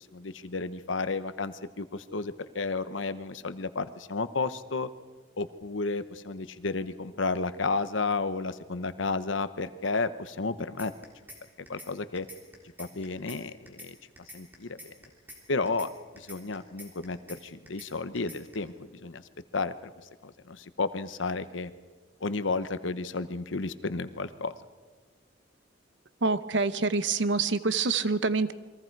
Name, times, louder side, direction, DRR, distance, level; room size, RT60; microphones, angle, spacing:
voice 1, 0.0-4.9 5.4-10.9 11.7-12.3 12.8-14.0 14.3-14.9 15.5-15.9 16.1-19.2 19.5-19.9 20.2-21.7 22.2-24.6, left 3 dB, 85° left, 12 dB, 1.0 m, -32 dB
sound 1, 10.8-11.4 11.7-11.9 12.2-13.4 13.7-13.9 14.2-15.4 15.7-15.9 16.2-17.4 17.7-17.9 18.2-18.5, equal, 10° right, 3.5 m, -46 dB
voice 2, 26.2-28.5, right 4 dB, 70° right, 13 dB, 0.9 m, -26 dB
28.5 x 22.5 x 4.7 m, 1.4 s
head